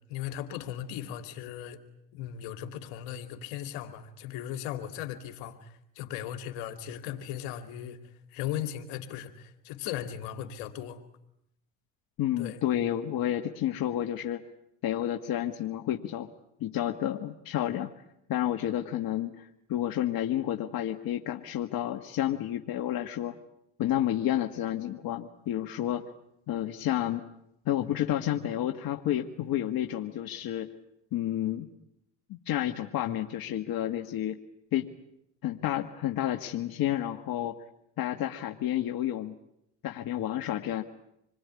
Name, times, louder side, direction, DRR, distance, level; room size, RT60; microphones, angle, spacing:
voice 1, 0.1-1.8 2.1-8.0 8.3-11.0 12.4-12.6, left 11 dB, 80° left, 2.7 m, -37 dB
voice 2, 12.2-14.4 14.8-16.3 16.6-17.9 18.3-23.4 23.8-26.1 26.5-27.2 27.7-30.7 31.1-31.7 32.3-34.4 34.7-34.9 35.4-37.6 38.0-39.3 39.8-40.8, left 12 dB, 60° left, 1.7 m, -30 dB
27.0 x 21.0 x 9.7 m
supercardioid pair, 75°, 39 cm